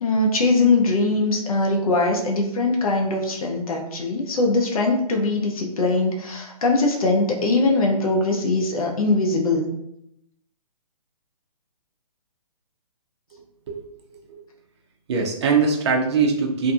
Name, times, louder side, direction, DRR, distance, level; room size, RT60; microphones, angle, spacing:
voice 1, 0.0-9.7, left 2 dB, 65° left, 1 dB, 0.6 m, -21 dB
voice 2, 15.1-16.7, right 5 dB, 45° right, 1 dB, 0.5 m, -21 dB
2.7 x 2.5 x 2.3 m, 0.79 s
hypercardioid pair, 140°, 20 cm